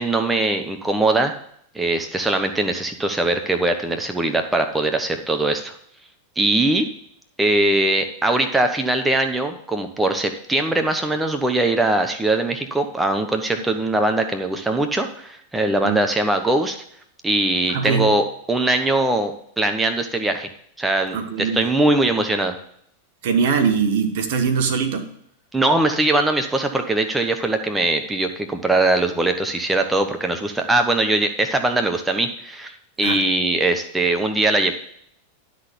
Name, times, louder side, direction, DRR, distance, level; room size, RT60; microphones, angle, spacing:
voice 1, 0.0-1.3 1.7-5.7 6.4-6.8 7.4-16.8 17.2-20.5 20.8-22.5 25.5-32.7 33.0-34.7, right 2 dB, 10° right, 5 dB, 1.0 m, -21 dB
voice 2, 17.7-18.1 21.1-21.7 23.2-25.1 33.0-33.2, right 6 dB, 65° right, 7 dB, 1.3 m, -22 dB
11.5 x 4.1 x 6.8 m, 0.67 s
hypercardioid pair, 105°, 0 cm